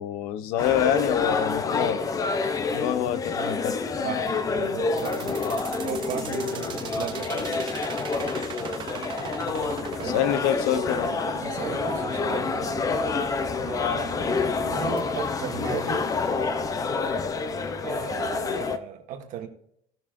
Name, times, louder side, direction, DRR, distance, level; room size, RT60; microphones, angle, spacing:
voice 1, 0.0-2.0 2.7-3.8 10.0-11.2, left 10 dB, 90° left, 0.7 m, -26 dB
sound 1, 0.6-18.8, left 4 dB, 25° left, 0.6 m, -28 dB
voice 2, 4.0-5.4 5.8-7.7 10.0-10.2 11.4-12.7 13.6-16.1 17.8-19.5, right 9 dB, 60° right, 1.5 m, -36 dB
sound 2, 5.0-15.0, right 8 dB, 30° right, 0.6 m, -39 dB
18.0 x 6.1 x 2.5 m
cardioid pair, 160°, 15 cm